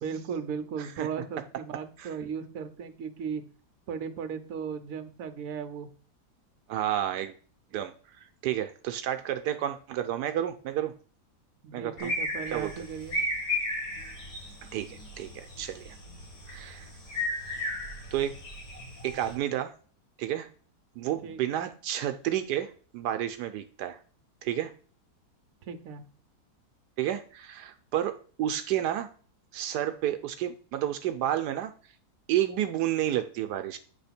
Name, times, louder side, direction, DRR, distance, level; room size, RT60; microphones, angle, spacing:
voice 1, 0.0-3.4 3.9-5.9 11.6-13.2 21.2-21.6 25.6-26.0, right 6 dB, 60° right, 7 dB, 1.2 m, -36 dB
voice 2, 6.7-7.3 7.7-10.9 11.7-12.1 12.5-12.7 14.7-16.0 16.5-16.9 18.1-18.3 19.0-19.7 20.2-20.5 21.0-24.0 24.4-24.7 27.0-29.1 29.5-31.7 32.3-33.8, right 11 dB, 85° right, 8 dB, 1.2 m, -31 dB
sound 1, 12.0-19.3, left 1 dB, 80° left, 2.9 m, -35 dB
9.1 x 3.5 x 5.8 m, 0.41 s
omnidirectional pair, 1.8 m